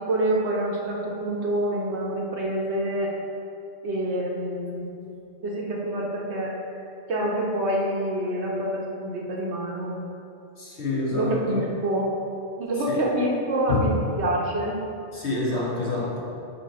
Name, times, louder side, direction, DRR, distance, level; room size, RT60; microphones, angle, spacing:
voice 1, 0.0-3.1 3.8-4.9 5.4-6.5 7.1-10.0 11.1-12.1 12.6-14.8, right 1 dB, 75° right, -2 dB, 1.3 m, -26 dB
voice 2, 10.6-11.6 12.9-13.0 13.7-13.8 15.1-16.2, left 3 dB, 70° left, -5 dB, 1.7 m, -27 dB
8.4 x 3.1 x 5.1 m, 2.6 s
omnidirectional pair, 1.2 m